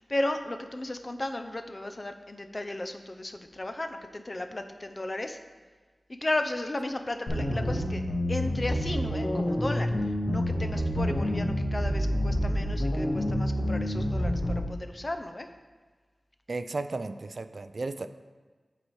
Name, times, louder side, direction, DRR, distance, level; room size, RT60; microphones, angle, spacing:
voice 1, 0.0-5.4 6.1-8.0 8.3-15.5, left 1 dB, 35° left, 7 dB, 0.5 m, -34 dB
sound 1, 7.3-14.6, equal, 70° left, 1.5 m, -28 dB
voice 2, 16.5-18.1, right 3 dB, 60° right, 10 dB, 0.3 m, -34 dB
8.2 x 4.1 x 4.7 m, 1.4 s
wide cardioid pair, 70°, 0 cm